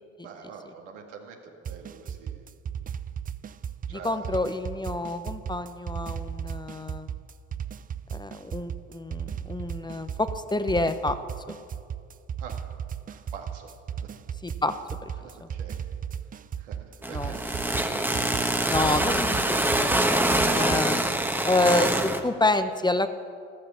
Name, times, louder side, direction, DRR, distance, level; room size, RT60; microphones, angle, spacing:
voice 1, 0.2-2.5 3.9-4.4 12.4-12.6 13.1-13.7 14.0-14.1 15.2-15.7 16.6-18.1, right 6 dB, 80° right, 2 dB, 2.1 m, -45 dB
sound 1, 1.6-20.9, right 8 dB, 25° right, 0.5 m, -36 dB
voice 2, 3.9-7.1 8.1-11.2 11.5-11.6 14.4-14.7 15.0-15.1 15.4-15.5 17.1-17.3 18.7-21.0 21.4-23.1, left 2 dB, 10° left, 10 dB, 0.8 m, -28 dB
sound 2, 17.0-22.2, right 1 dB, 5° right, 1.4 m, -25 dB
13.5 x 13.0 x 7.0 m, 2.3 s
hypercardioid pair, 70°, 35 cm